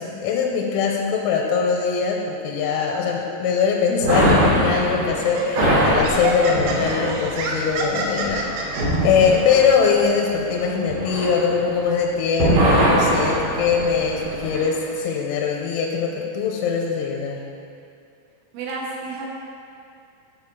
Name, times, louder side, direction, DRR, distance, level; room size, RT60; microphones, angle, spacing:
voice 1, 0.0-17.4, left 6 dB, 85° left, 0 dB, 3.1 m, -22 dB
sound 1, 4.0-12.0 12.3-14.7, right 1 dB, 50° right, 3.2 m, -22 dB
Laughter, 4.3-4.6 5.2-8.8, right 3 dB, 90° right, 3.4 m, -27 dB
voice 2, 18.5-19.3, right 3 dB, 70° right, -3 dB, 3.1 m, -31 dB
11.5 x 4.4 x 4.7 m, 2.4 s
omnidirectional pair, 5.8 m